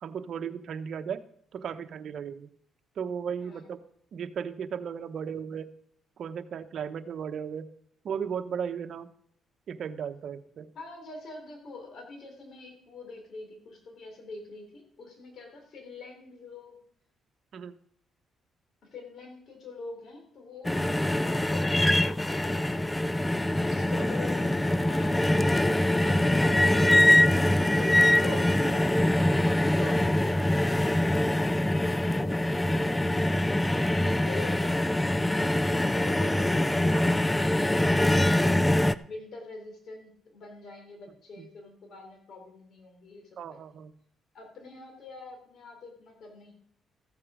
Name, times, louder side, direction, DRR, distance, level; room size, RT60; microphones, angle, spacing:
voice 1, 0.0-1.2 1.5-2.5 3.0-3.8 4.1-5.7 6.2-7.7 8.0-9.1 9.7-10.7 17.5-17.7 28.3-28.4 29.8-30.1 36.9-37.1 41.4-41.5 43.4-43.9, right 7 dB, 60° right, 8 dB, 1.0 m, -36 dB
voice 2, 10.7-16.8 18.8-23.0 23.7-29.4 29.8-33.5 34.0-38.7 39.1-43.6 44.3-46.5, left 3 dB, 60° left, 4 dB, 3.7 m, -45 dB
sound 1, 20.6-38.9, left 1 dB, 10° left, 0.4 m, -24 dB
14.5 x 8.4 x 5.0 m, 0.67 s
cardioid pair, 90°, 0 cm